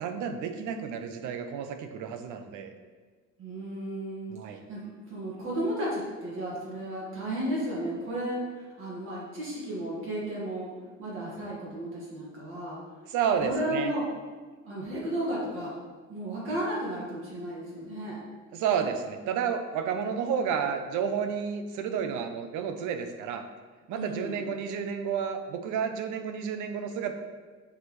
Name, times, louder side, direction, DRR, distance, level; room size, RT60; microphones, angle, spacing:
voice 1, 0.0-2.7 4.3-4.6 13.1-13.9 18.5-23.5 23.9-27.1, right 7 dB, 85° right, 7 dB, 0.8 m, -31 dB
voice 2, 3.4-10.7 11.0-12.8 13.4-14.0 14.6-15.7 16.1-18.2 23.9-24.4, right 1 dB, 45° right, -5 dB, 1.9 m, -34 dB
7.0 x 6.6 x 3.2 m, 1.4 s
cardioid pair, 155°, 29 cm